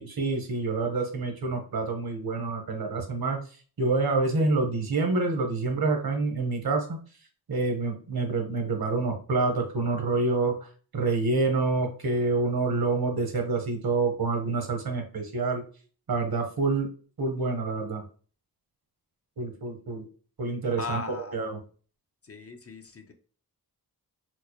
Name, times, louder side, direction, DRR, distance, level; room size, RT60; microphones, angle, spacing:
voice 1, 0.0-3.4 3.8-7.0 7.5-15.6 16.1-16.9 17.2-18.1 19.4-20.0 20.4-21.6, right 3 dB, 65° right, 3 dB, 1.0 m, -27 dB
voice 2, 20.8-21.4 22.2-23.1, left 3 dB, 35° left, 5 dB, 0.5 m, -37 dB
4.5 x 2.0 x 2.9 m, 0.40 s
wide cardioid pair, 70°, 39 cm